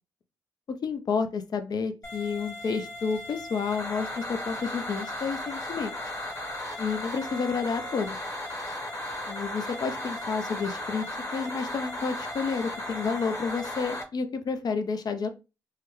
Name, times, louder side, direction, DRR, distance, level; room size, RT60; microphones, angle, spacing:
voice 1, 0.8-5.9 6.8-8.2 9.3-11.0 11.3-15.3, left 5 dB, 50° left, 8 dB, 0.6 m, -30 dB
sound 1, 2.0-14.0, left 1 dB, 30° left, 1.2 m, -36 dB
3.3 x 2.2 x 3.1 m, 0.29 s
supercardioid pair, 55°, 9 cm